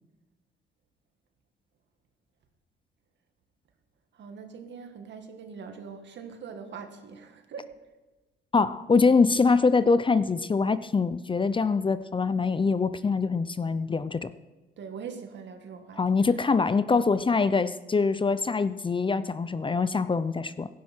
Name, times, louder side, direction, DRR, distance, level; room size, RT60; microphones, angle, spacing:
voice 1, 4.1-7.7 14.8-16.1, right 6 dB, 65° right, 6 dB, 2.0 m, -42 dB
voice 2, 8.5-14.3 16.0-20.7, left 4 dB, 25° left, 14 dB, 0.6 m, -24 dB
16.5 x 11.0 x 4.5 m, 1.1 s
cardioid pair, 90°, 20 cm